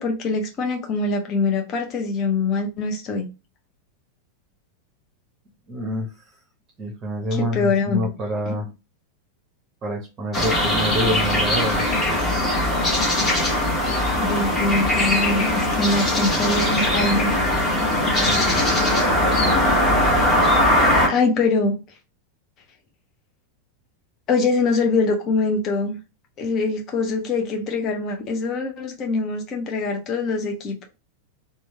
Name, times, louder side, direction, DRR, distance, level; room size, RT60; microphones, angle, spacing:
voice 1, 0.0-3.3 7.3-8.0 8.5-8.6 14.2-17.3 21.1-21.8 24.3-26.0 26.4-30.9, left 3 dB, 35° left, 0.6 m, -23 dB
voice 2, 5.7-6.2 6.8-8.7 9.8-11.9 18.2-18.6, equal, 25° right, 0.7 m, -27 dB
sound 1, 10.3-21.1, left 1 dB, 15° left, 1.2 m, -20 dB
3.0 x 2.3 x 3.0 m
figure-of-eight pair, 90°, 0 cm